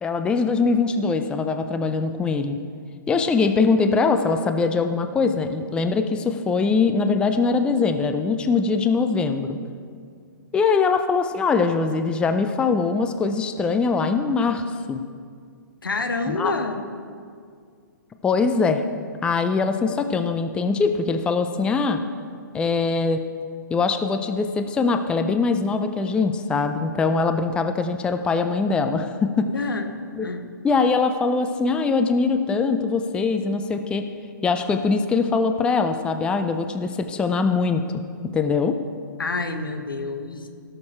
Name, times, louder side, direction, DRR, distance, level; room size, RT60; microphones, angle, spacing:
voice 1, 0.0-2.6 3.1-9.6 10.5-15.0 16.3-16.5 18.2-18.8 19.2-22.0 22.5-23.2 23.7-29.5 30.2-30.3 30.6-34.1 34.4-38.0 38.3-38.8, left 4 dB, 10° left, 7 dB, 0.4 m, -22 dB
voice 2, 15.8-16.9 29.5-30.4 39.2-40.5, left 3 dB, 85° left, 6 dB, 1.2 m, -28 dB
17.0 x 6.6 x 4.3 m, 2.1 s
hypercardioid pair, 130°, 11 cm